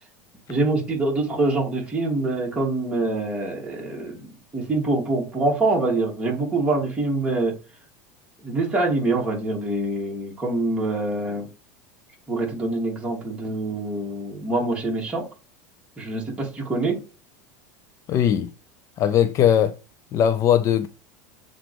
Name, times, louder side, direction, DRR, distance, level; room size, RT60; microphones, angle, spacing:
voice 1, 0.5-7.5 8.4-11.5 12.3-15.3 16.0-17.0, right 2 dB, 15° right, 2.7 m, -25 dB
voice 2, 18.1-18.5 19.0-19.8 20.1-20.9, left 9 dB, 40° left, 0.5 m, -19 dB
7.3 x 3.8 x 3.4 m
supercardioid pair, 120°, 8 cm